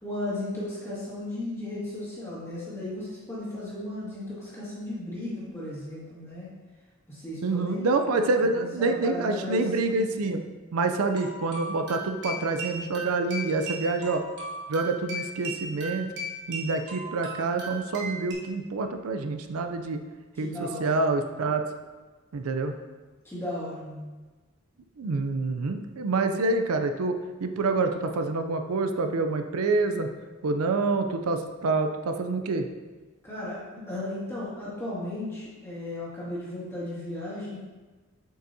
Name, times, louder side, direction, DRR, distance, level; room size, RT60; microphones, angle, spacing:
voice 1, 0.0-6.5 7.1-7.8 8.5-9.6 20.3-21.0 23.2-24.1 33.2-37.6, left 1 dB, 10° left, -8 dB, 2.0 m, -35 dB
voice 2, 7.4-10.4 10.7-14.2 14.7-16.1 16.5-20.0 20.4-20.5 20.8-21.6 22.3-22.7 25.0-30.1 30.4-32.7, right 3 dB, 90° right, 7 dB, 0.5 m, -27 dB
sound 1, 11.1-18.3, right 1 dB, 50° right, 1.4 m, -37 dB
7.7 x 5.3 x 2.7 m, 1.3 s
head